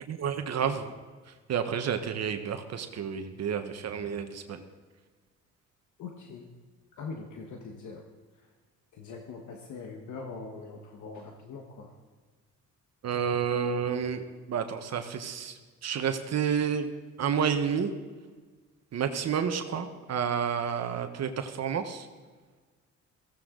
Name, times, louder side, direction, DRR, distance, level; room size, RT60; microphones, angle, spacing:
voice 1, 0.1-0.9 1.5-4.6 13.0-16.9 17.2-17.9 18.9-22.1, right 7 dB, 60° right, 7 dB, 1.2 m, -30 dB
voice 2, 6.0-6.5 7.0-8.1 8.3-8.5 8.9-11.9, left 4 dB, 75° left, 2 dB, 1.5 m, -42 dB
16.5 x 15.5 x 3.9 m, 1.4 s
cardioid pair, 90°, 30 cm